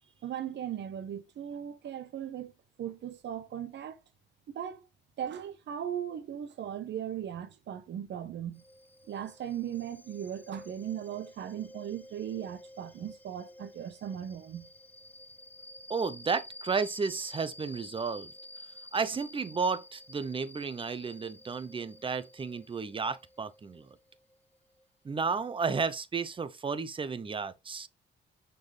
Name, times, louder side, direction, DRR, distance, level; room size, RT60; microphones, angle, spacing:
voice 1, 0.2-2.5 2.8-4.0 4.5-4.8 5.2-8.6 9.1-14.7, right 9 dB, 65° right, 1.1 m, -38 dB
sound 1, 8.6-24.8, left 1 dB, 10° left, 0.7 m, -50 dB
voice 2, 15.9-18.3 18.9-23.9 25.0-27.9, right 5 dB, 25° right, 0.7 m, -32 dB
6.4 x 4.5 x 3.3 m
cardioid pair, 90°, 20 cm